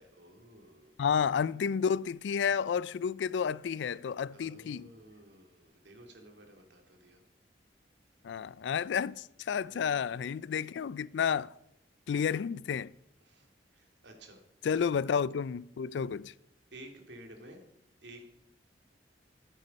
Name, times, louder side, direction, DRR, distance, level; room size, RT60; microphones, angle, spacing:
voice 1, 0.0-1.0 4.3-7.2 9.6-10.2 10.5-10.8 13.2-14.4 14.7-14.9 16.7-17.6 18.0-18.2, right 1 dB, 75° right, 2.3 m, -53 dB
voice 2, 1.0-4.9 8.2-11.5 12.1-12.9 14.6-16.3, left 7 dB, 75° left, 0.3 m, -31 dB
13.5 x 8.2 x 5.4 m
head